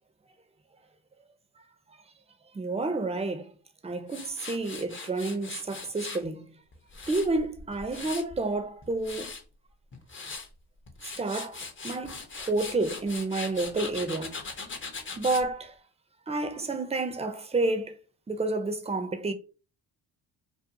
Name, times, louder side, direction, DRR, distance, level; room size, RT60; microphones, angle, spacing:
voice 1, 2.5-3.5 3.8-6.5 7.1-9.3 11.0-14.4 15.2-15.7 16.3-17.9 18.3-19.3, right 2 dB, 15° right, 0.5 m, -30 dB
Tools, 4.1-6.2 6.7-8.4 8.8-9.4 9.9-10.5 10.9-15.5, left 4 dB, 25° left, 0.6 m, -40 dB
2.5 x 2.3 x 2.6 m
supercardioid pair, 60°, 46 cm